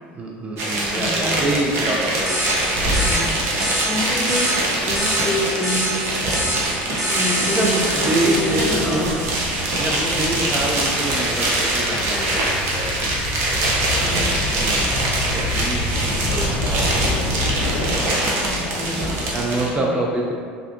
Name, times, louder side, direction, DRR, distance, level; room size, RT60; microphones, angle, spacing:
voice 1, 0.1-3.3 3.5-3.8 7.2-9.2 9.7-13.1 14.6-17.3 19.3-20.3, right 1 dB, 25° right, -1 dB, 0.4 m, -27 dB
sound 1, 0.6-19.7, right 1 dB, 55° right, 0.7 m, -23 dB
voice 2, 0.9-1.7 3.1-3.6 3.8-4.5 4.9-6.0 7.1-9.1 14.0-14.5 18.7-19.4 19.7-19.9, left 1 dB, 25° left, -3 dB, 0.7 m, -27 dB
sound 2, 2.3-9.4, right 1 dB, ahead, 1.1 m, -28 dB
Gull seagull / Waves surf / Siren, 3.4-17.9, left 2 dB, 90° left, 0.4 m, -30 dB
3.2 x 2.6 x 2.6 m, 2.1 s
hypercardioid pair, 85°, 5 cm